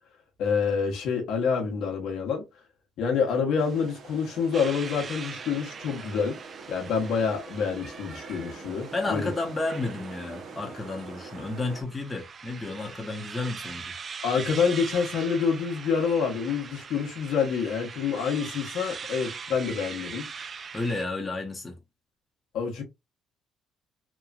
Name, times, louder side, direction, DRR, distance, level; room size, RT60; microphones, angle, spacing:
voice 1, 0.4-2.4 3.0-6.4 6.7-9.3 14.2-20.3 22.5-22.8, left 6 dB, 80° left, 0.9 m, -27 dB
sound 1, 3.6-11.8, right 4 dB, 60° right, 0.8 m, -45 dB
sound 2, 4.5-21.0, right 5 dB, 45° right, 0.3 m, -41 dB
voice 2, 8.9-13.9 20.7-21.8, left 2 dB, 20° left, 0.8 m, -32 dB
3.0 x 2.3 x 2.3 m
cardioid pair, 90°, 0 cm